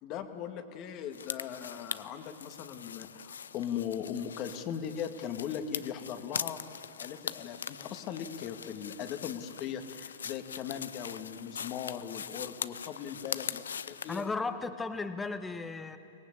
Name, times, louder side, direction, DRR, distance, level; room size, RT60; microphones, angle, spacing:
voice 1, 0.0-6.6 7.0-14.2, left 9 dB, 40° left, 7 dB, 2.0 m, -39 dB
sound 1, 1.1-14.3, left 7 dB, 85° left, 0.6 m, -42 dB
voice 2, 14.1-16.0, left 3 dB, 10° left, 9 dB, 1.4 m, -35 dB
24.0 x 19.0 x 8.7 m, 2.7 s
hypercardioid pair, 115°, 0 cm